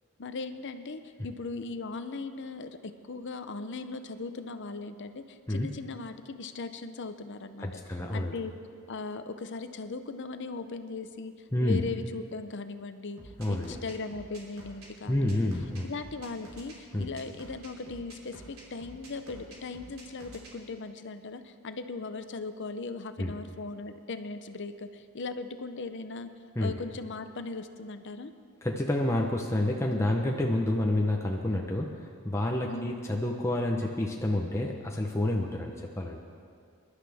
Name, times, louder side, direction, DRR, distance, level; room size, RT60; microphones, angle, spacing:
voice 1, 0.2-7.8 8.1-8.6 8.9-11.3 11.6-13.2 13.5-15.5 15.8-26.3 26.6-28.3 32.7-33.0, left 3 dB, 55° left, 10 dB, 0.7 m, -38 dB
voice 2, 7.6-8.4 11.5-11.8 13.4-13.8 15.1-15.9 16.9-17.1 23.2-23.3 26.6-26.7 28.6-31.9 32.2-36.2, left 1 dB, 10° left, 0 dB, 0.8 m, -29 dB
sound 1, 13.2-20.5, right 1 dB, 70° right, 3.1 m, -48 dB
22.5 x 11.5 x 3.5 m, 2.3 s
head